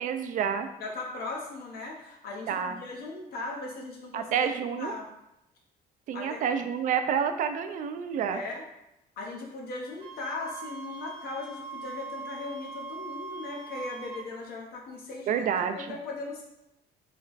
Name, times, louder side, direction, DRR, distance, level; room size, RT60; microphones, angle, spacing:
voice 1, 0.0-0.7 2.5-2.8 4.1-4.9 6.1-8.4 15.3-16.0, right 7 dB, 50° right, 8 dB, 0.4 m, -29 dB
voice 2, 0.8-4.5 4.8-5.1 6.1-6.4 8.3-8.6 9.2-16.4, left 3 dB, 65° left, -1 dB, 0.9 m, -38 dB
Wind instrument woodwind instrument, 10.0-14.3, right 4 dB, 85° right, 0.8 m, -41 dB
3.2 x 2.1 x 3.9 m, 0.88 s
cardioid pair, 110°, 17 cm